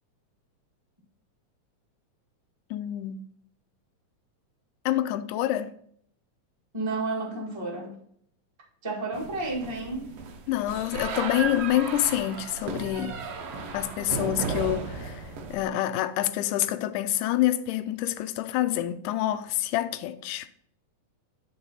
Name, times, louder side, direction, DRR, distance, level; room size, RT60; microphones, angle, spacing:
voice 1, 2.7-3.3 4.9-5.8 10.5-13.2 13.7-20.5, left 13 dB, 85° left, 2.1 m, -27 dB
voice 2, 6.7-7.9 8.8-10.1, right 2 dB, 15° right, 1.1 m, -31 dB
sound 1, 9.1-15.7, right 5 dB, 65° right, 1.7 m, -35 dB
11.0 x 3.9 x 4.0 m
omnidirectional pair, 3.6 m